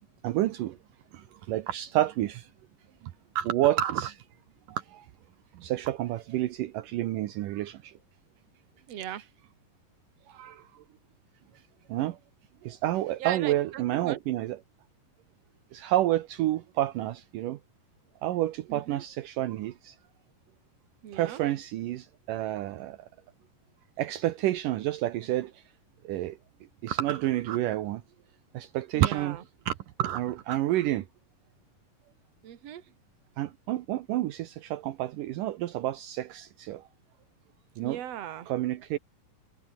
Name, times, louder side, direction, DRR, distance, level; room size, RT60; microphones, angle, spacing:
voice 1, 0.2-0.8 1.1-2.5 3.4-4.2 4.7-5.1 5.5-7.9 10.3-10.8 11.9-12.2 12.6-14.6 15.7-17.6 18.2-20.0 21.1-23.1 24.0-25.6 26.0-26.4 26.8-28.0 28.5-31.1 33.4-36.8 37.8-38.0 38.5-39.0, right 14 dB, 75° right, 2.5 m, -29 dB
voice 2, 8.9-9.2 13.2-14.2 18.7-19.0 21.0-21.4 28.9-29.4 32.4-32.8 37.8-38.5, right 11 dB, 50° right, 2.7 m, -38 dB
omnidirectional pair, 4.0 m